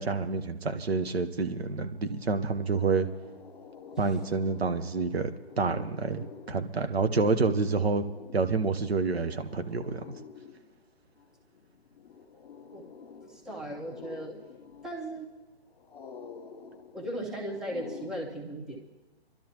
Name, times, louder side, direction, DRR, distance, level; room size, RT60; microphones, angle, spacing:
voice 1, 0.0-3.1 4.0-5.3 5.6-8.0 8.3-10.0, right 4 dB, 70° right, 8 dB, 1.1 m, -28 dB
sound 1, 1.6-1.7 2.0-18.1, left 6 dB, 50° left, 1.3 m, -49 dB
voice 2, 13.2-14.4 14.8-15.3 16.9-18.9, right 1 dB, ahead, -1 dB, 0.9 m, -37 dB
26.0 x 12.0 x 3.0 m, 1.1 s
figure-of-eight pair, 135°, 32 cm